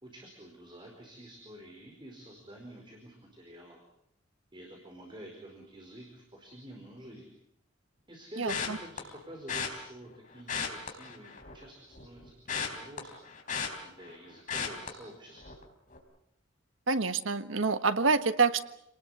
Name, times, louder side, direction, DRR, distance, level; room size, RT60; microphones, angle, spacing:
voice 1, 0.0-3.8 4.5-7.3 8.1-13.3 13.8-15.4, right 1 dB, 25° right, 1 dB, 4.7 m, -48 dB
sound 1, 8.5-9.0 9.5-9.7 10.4-11.6 11.9-14.2 14.5-14.9 15.4-15.6 15.9-16.0, left 6 dB, 40° left, 4.2 m, -35 dB
voice 2, 16.9-18.6, right 4 dB, 90° right, 11 dB, 1.5 m, -26 dB
28.5 x 19.5 x 8.2 m, 0.76 s
head